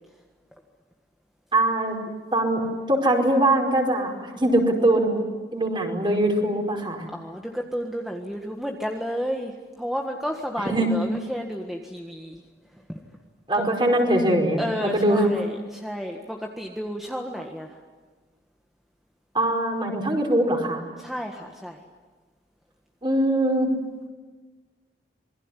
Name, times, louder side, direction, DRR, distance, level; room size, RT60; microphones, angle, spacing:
voice 1, 1.5-2.0 2.3-7.1 10.6-10.9 13.5-15.3 19.3-20.8 23.0-23.7, right 1 dB, 25° right, 3 dB, 4.9 m, -22 dB
voice 2, 7.1-9.5 9.8-12.4 12.9-13.0 13.6-13.7 14.6-17.7 21.0-21.8, equal, ahead, 2 dB, 1.6 m, -31 dB
27.5 x 22.0 x 10.0 m, 1.4 s
head